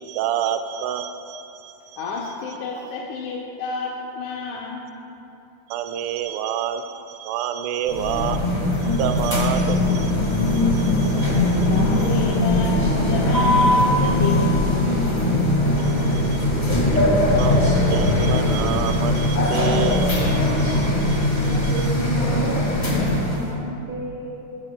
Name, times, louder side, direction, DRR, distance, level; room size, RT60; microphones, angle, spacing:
voice 1, 0.0-2.0 5.7-12.1 15.7-21.9, right 9 dB, 80° right, 8 dB, 1.9 m, -29 dB
voice 2, 2.0-4.8 11.6-14.8 15.7-15.9, left 4 dB, 80° left, -2 dB, 2.2 m, -30 dB
sound 1, 7.9-23.5, left 1 dB, 55° left, 0.4 m, -20 dB
voice 3, 21.3-24.4, right 1 dB, 65° right, -1 dB, 1.2 m, -32 dB
16.0 x 9.6 x 2.2 m, 2.8 s
omnidirectional pair, 3.6 m